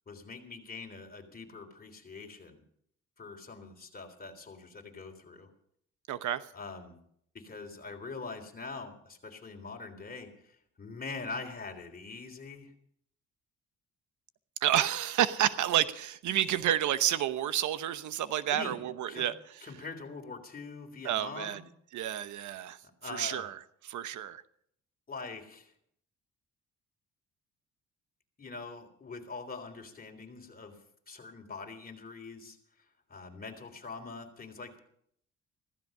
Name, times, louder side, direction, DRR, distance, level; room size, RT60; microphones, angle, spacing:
voice 1, 0.1-2.6 3.2-5.5 6.5-7.0 7.3-12.7 18.5-19.3 19.6-21.6 23.0-23.5 25.1-25.7 28.4-30.8 31.1-32.6 33.1-34.8, left 4 dB, 30° left, 4 dB, 3.5 m, -43 dB
voice 2, 6.1-6.4 14.6-19.3 21.0-21.6 21.9-22.8 23.1-23.6 23.9-24.4, right 11 dB, 75° right, 13 dB, 0.9 m, -29 dB
15.5 x 14.5 x 5.5 m, 0.67 s
cardioid pair, 90°, 30 cm